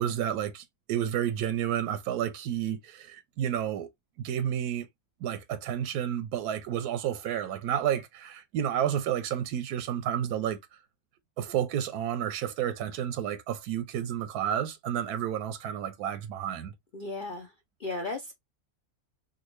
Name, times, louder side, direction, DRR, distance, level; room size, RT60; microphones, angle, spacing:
voice 1, 0.0-3.9 4.2-4.9 5.2-10.6 11.4-16.7, right 10 dB, 85° right, 1.1 m, -31 dB
voice 2, 16.9-17.5 17.8-18.3, left 2 dB, 70° left, 0.4 m, -35 dB
3.5 x 2.3 x 3.0 m
omnidirectional pair, 1.6 m